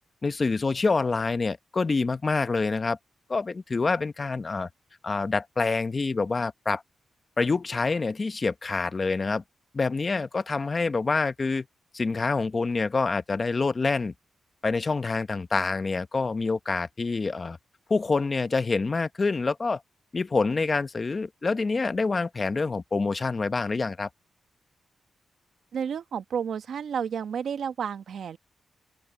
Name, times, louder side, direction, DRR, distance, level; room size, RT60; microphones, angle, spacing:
voice 1, 0.2-3.0 3.3-4.7 5.0-6.8 7.4-9.4 9.7-11.7 11.9-14.1 14.6-17.6 17.9-19.8 20.1-24.1, left 4 dB, 40° left, 1.1 m, -26 dB
voice 2, 25.7-28.4, right 7 dB, 75° right, 1.3 m, -31 dB
open air
cardioid pair, 80°, 0 cm